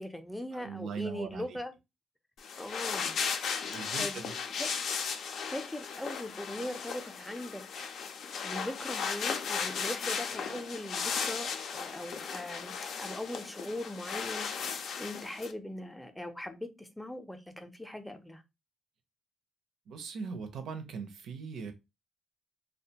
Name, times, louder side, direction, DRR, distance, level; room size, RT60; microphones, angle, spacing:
voice 1, 0.0-1.7 2.6-3.2 4.0-4.2 4.5-4.7 5.4-7.6 8.4-14.5 15.0-18.4, left 1 dB, 5° left, 0.5 m, -40 dB
voice 2, 0.5-1.6 3.7-4.3 19.9-21.7, right 5 dB, 75° right, 0.6 m, -40 dB
sound 1, 2.4-15.5, left 6 dB, 70° left, 0.4 m, -36 dB
2.4 x 2.2 x 2.8 m
cardioid pair, 85°, 0 cm